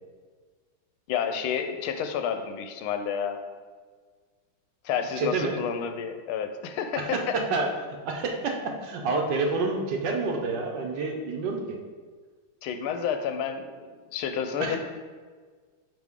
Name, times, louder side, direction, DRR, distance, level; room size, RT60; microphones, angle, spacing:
voice 1, 1.1-3.4 4.8-7.4 12.6-14.8, left 7 dB, 90° left, 8 dB, 1.4 m, -30 dB
voice 2, 5.2-5.5 7.0-7.7 8.0-11.8 14.6-14.8, right 3 dB, 65° right, 2 dB, 1.3 m, -28 dB
6.0 x 5.2 x 3.6 m, 1.5 s
omnidirectional pair, 2.2 m